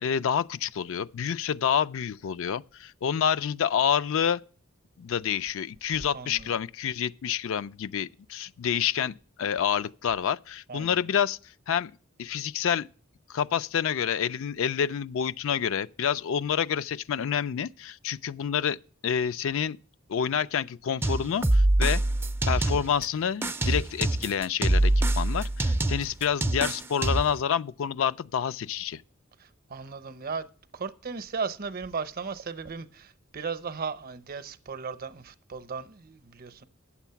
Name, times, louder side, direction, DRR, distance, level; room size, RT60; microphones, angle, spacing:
voice 1, 0.0-4.4 5.0-11.4 11.7-11.9 12.2-12.9 13.3-18.8 19.0-19.8 20.1-22.0 22.5-29.0, left 8 dB, 70° left, 0.4 m, -28 dB
voice 2, 6.1-6.5 10.7-11.0 29.4-30.5 30.7-36.6, right 5 dB, 45° right, 0.7 m, -36 dB
sound 1, 21.0-23.0 23.4-27.4, right 1 dB, 10° right, 0.4 m, -24 dB
9.0 x 7.2 x 5.7 m
head